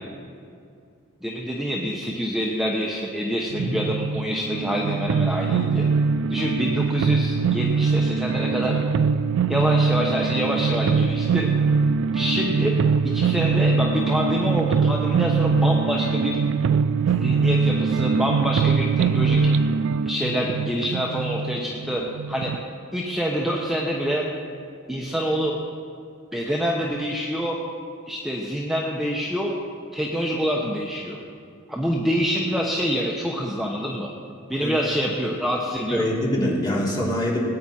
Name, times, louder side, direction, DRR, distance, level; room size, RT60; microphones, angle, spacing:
voice 1, 1.2-5.9 6.3-8.8 9.5-11.5 12.1-12.8 13.1-16.4 17.1-19.5 20.0-22.0 22.3-22.5 22.9-24.2 24.9-25.6 26.3-27.6 28.1-29.6 29.9-31.2 31.7-34.1 34.5-36.0, equal, ahead, -2 dB, 0.9 m, -26 dB
sound 1, 3.5-22.6, right 5 dB, 65° right, 0.3 m, -22 dB
voice 2, 35.9-37.4, equal, 20° left, -5 dB, 2.8 m, -24 dB
20.0 x 9.3 x 4.3 m, 2.4 s
head